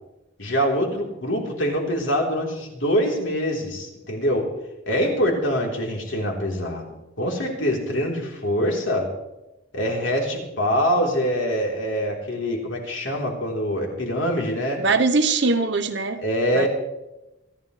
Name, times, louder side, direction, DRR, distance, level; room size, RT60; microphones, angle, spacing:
voice 1, 0.4-4.5 4.9-6.8 7.2-9.1 9.7-14.8 16.2-16.7, equal, 80° left, -1 dB, 3.7 m, -24 dB
voice 2, 14.8-16.2 16.5-16.7, right 3 dB, 65° right, 7 dB, 1.0 m, -21 dB
28.0 x 11.0 x 3.3 m, 0.95 s
head